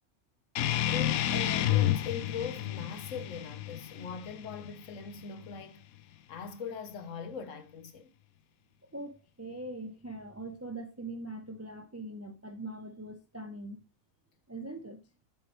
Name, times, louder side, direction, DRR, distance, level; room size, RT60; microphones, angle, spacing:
sound 1, 0.6-5.6, left 12 dB, 85° left, 1.0 m, -31 dB
voice 1, 0.9-5.8 6.3-8.1, left 6 dB, 65° left, 1.3 m, -41 dB
voice 2, 8.9-13.8 14.5-15.0, right 2 dB, 20° right, 0.4 m, -42 dB
8.3 x 6.5 x 3.1 m
omnidirectional pair, 1.5 m